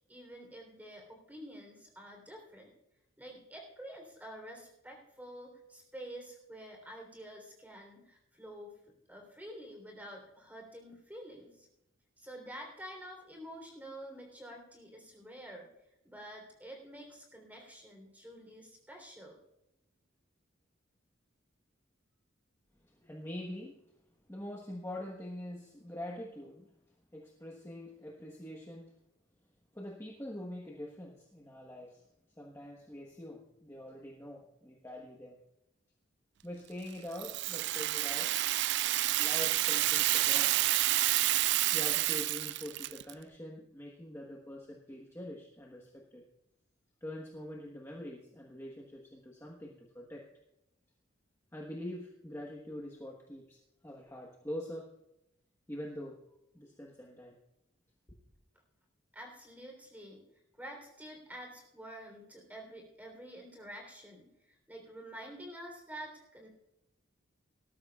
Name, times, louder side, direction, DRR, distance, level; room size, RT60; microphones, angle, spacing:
voice 1, 0.1-2.7 3.2-8.8 9.1-11.7 12.2-15.7 16.0-19.4 59.1-60.2 60.6-66.5, equal, 10° right, 1 dB, 3.5 m, -48 dB
voice 2, 22.8-23.8 24.3-26.7 27.1-29.0 29.7-32.0 32.4-35.4 36.4-38.3 39.2-40.6 41.7-46.2 47.0-50.2 51.5-54.9 55.7-56.2 56.5-57.4, left 1 dB, 15° left, -2 dB, 1.2 m, -44 dB
Rattle (instrument), 37.2-43.1, right 16 dB, 55° right, 0.3 m, -29 dB
19.0 x 13.0 x 2.4 m, 0.84 s
head